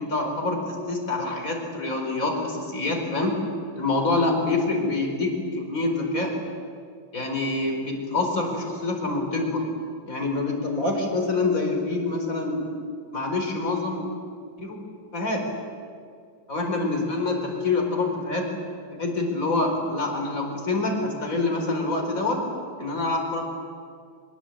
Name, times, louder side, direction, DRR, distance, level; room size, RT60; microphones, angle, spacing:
voice 1, 0.0-3.4 3.7-6.4 7.1-9.7 10.1-12.6 13.1-14.1 14.6-14.8 15.1-15.5 16.5-18.5 18.9-22.4 22.8-23.4, left 3 dB, 40° left, 2 dB, 5.0 m, -26 dB
24.0 x 22.0 x 8.7 m, 2.2 s
omnidirectional pair, 2.2 m